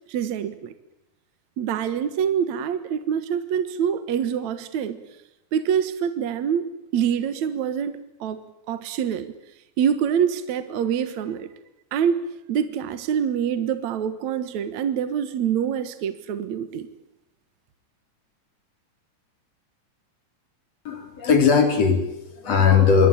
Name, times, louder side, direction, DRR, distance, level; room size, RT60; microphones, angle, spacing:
voice 1, 0.1-0.7 1.6-5.0 5.5-6.6 6.9-8.4 8.7-9.3 9.8-11.5 11.9-12.2 12.5-16.9, right 8 dB, 60° right, 11 dB, 2.6 m, -25 dB
voice 2, 20.8-23.1, left 6 dB, 50° left, 6 dB, 4.8 m, -19 dB
26.5 x 23.5 x 8.8 m, 0.87 s
omnidirectional pair, 3.8 m